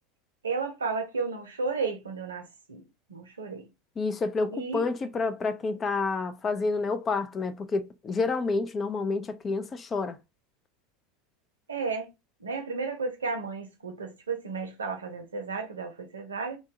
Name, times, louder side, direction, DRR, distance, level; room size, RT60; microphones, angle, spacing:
voice 1, 0.4-3.7 4.5-4.9 11.7-12.1 12.4-16.6, right 4 dB, 85° right, 0.7 m, -33 dB
voice 2, 4.0-10.2, left 3 dB, 30° left, 0.4 m, -29 dB
2.6 x 2.3 x 2.8 m
figure-of-eight pair, 80°, 0 cm